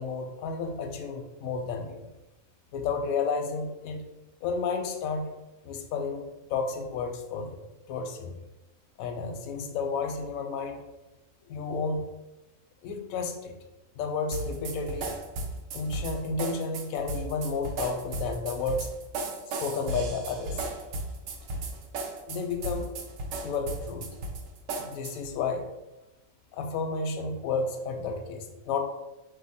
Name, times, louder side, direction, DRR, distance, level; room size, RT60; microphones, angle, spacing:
voice 1, 0.0-2.0 2.7-4.0 4.4-5.3 5.6-7.6 7.9-8.3 9.0-10.8 11.5-12.1 12.8-13.5 14.0-15.1 15.7-18.9 19.6-20.6 22.3-22.9 23.4-24.1 24.8-25.6 26.5-28.8, left 4 dB, 85° left, 5 dB, 1.0 m, -31 dB
sound 1, 14.3-25.3, right 2 dB, 70° right, 0.9 m, -35 dB
4.0 x 2.7 x 4.1 m, 1.0 s
omnidirectional pair, 1.4 m